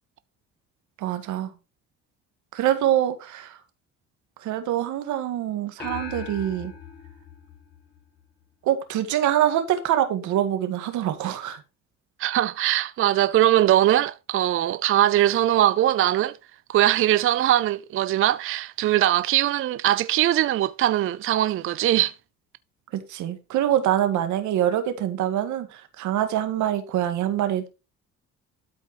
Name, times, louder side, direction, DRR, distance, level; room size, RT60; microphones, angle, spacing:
voice 1, 1.0-1.5 2.5-3.6 4.4-6.7 8.6-11.6 22.9-27.7, right 11 dB, 80° right, 1.9 m, -25 dB
sound 1, 5.8-8.4, left 6 dB, 35° left, 4.1 m, -39 dB
voice 2, 12.2-16.4 16.7-22.1, right 13 dB, 45° right, 0.4 m, -21 dB
12.5 x 4.5 x 4.5 m
cardioid pair, 90°, 29 cm